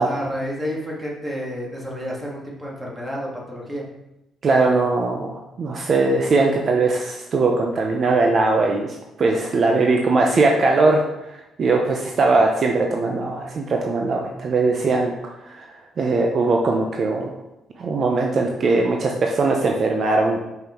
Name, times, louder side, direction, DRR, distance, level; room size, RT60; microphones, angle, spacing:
voice 1, 0.0-3.8, equal, 15° right, -3 dB, 2.2 m, -30 dB
voice 2, 4.4-11.0 11.3-15.1 15.5-15.7 16.0-17.3 17.8-20.4, right 3 dB, 50° right, 1 dB, 0.8 m, -20 dB
5.8 x 5.3 x 4.5 m, 0.92 s
cardioid pair, 90°, 0 cm